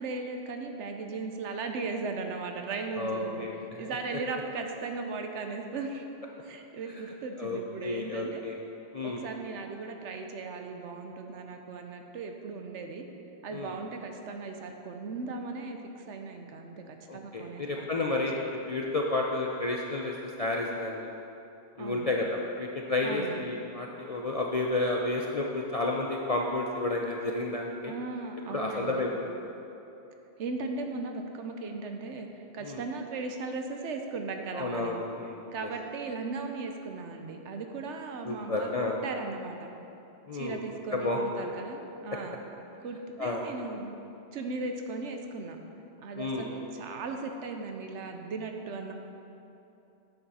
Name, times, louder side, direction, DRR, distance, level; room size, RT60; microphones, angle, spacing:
voice 1, 0.0-3.5 3.8-6.1 6.4-8.4 9.0-13.0 13.4-18.1 18.4-18.5 21.8-22.1 23.0-23.5 27.8-29.0 30.4-32.3 32.5-35.0 35.5-38.7 39.0-39.7 40.3-42.4 42.8-44.0 44.3-45.6 46.0-48.9, right 3 dB, 75° right, 4 dB, 1.0 m, -37 dB
voice 2, 3.0-3.6 7.4-8.6 8.9-9.2 13.5-13.7 17.1-21.1 21.8-27.9 28.5-29.3 32.6-32.8 34.5-35.7 38.3-39.0 40.3-40.6 40.9-41.5 43.2-43.4 46.2-46.4, left 2 dB, 50° left, -1 dB, 0.4 m, -31 dB
9.1 x 7.0 x 4.2 m, 2.9 s
omnidirectional pair, 1.2 m